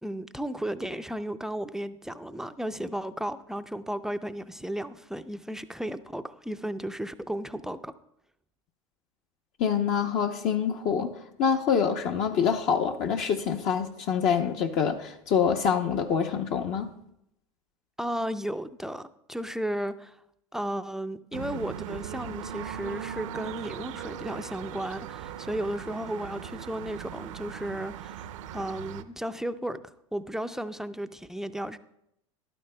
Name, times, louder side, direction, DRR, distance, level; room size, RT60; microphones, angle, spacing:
voice 1, 0.0-7.9 18.0-20.2 20.5-29.8 30.1-31.8, right 1 dB, 5° right, 10 dB, 0.4 m, -34 dB
voice 2, 9.6-11.1 11.4-16.9, left 7 dB, 50° left, 3 dB, 0.8 m, -26 dB
sound 1, 21.3-29.0, right 10 dB, 70° right, 0.7 m, -39 dB
13.0 x 12.0 x 2.2 m, 0.78 s
hypercardioid pair, 90°, 17 cm